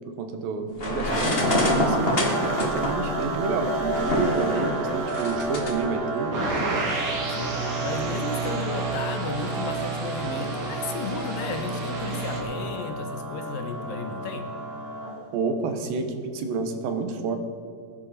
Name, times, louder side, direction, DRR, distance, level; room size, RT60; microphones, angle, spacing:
voice 1, 0.1-6.9 15.3-17.4, right 4 dB, 85° right, 6 dB, 3.1 m, -29 dB
sound 1, 0.8-5.7, left 1 dB, 35° left, 1.0 m, -26 dB
sound 2, 1.1-15.3, right 3 dB, 45° right, 4.1 m, -32 dB
sound 3, 6.3-12.4, right 3 dB, 60° right, 3.9 m, -31 dB
voice 2, 7.4-14.5, left 4 dB, 80° left, 5 dB, 3.0 m, -34 dB
20.5 x 11.0 x 4.3 m, 2.4 s
omnidirectional pair, 4.0 m